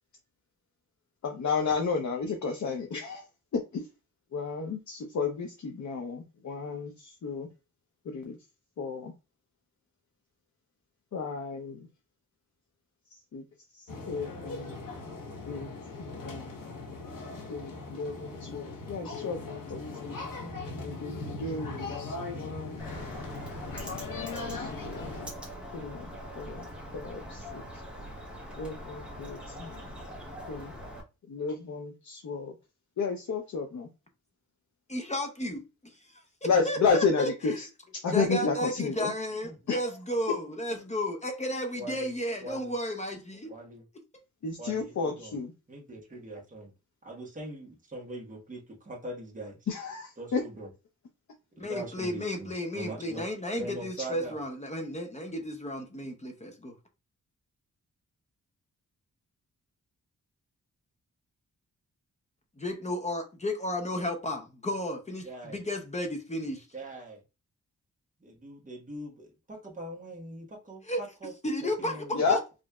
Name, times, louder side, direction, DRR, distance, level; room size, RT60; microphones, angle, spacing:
voice 1, 1.2-3.2 3.5-3.9 4.3-7.5 8.1-8.4 8.8-9.1 11.1-11.8 13.3-13.4 13.7-14.8 15.5-15.7 16.0-16.6 17.5-20.2 20.8-23.0 24.5-25.1 25.7-26.1 26.4-26.7 26.9-27.6 28.6-29.8 30.5-30.7 31.3-32.5 33.0-33.9 36.5-37.7 37.9-39.1 39.7-39.8 44.4-45.5 49.7-50.4 72.1-72.4, left 5 dB, 60° left, 0.7 m, -32 dB
sound 1, 13.9-25.3, left 3 dB, 90° left, 1.0 m, -39 dB
Bird, 22.8-31.0, equal, 5° right, 1.1 m, -42 dB
voice 2, 34.9-37.6 38.1-43.5 51.6-56.8 62.6-66.7 70.9-71.0 71.4-72.4, left 1 dB, 20° left, 0.7 m, -33 dB
voice 3, 41.8-42.1 42.4-42.7 43.5-43.8 44.6-45.4 45.7-46.7 47.0-49.6 50.2-50.7 51.6-53.3 53.6-54.4 65.2-65.6 66.7-67.2 68.2-71.3 71.6-72.2, right 1 dB, 25° right, 1.2 m, -42 dB
5.1 x 2.6 x 2.3 m
wide cardioid pair, 155°, 32 cm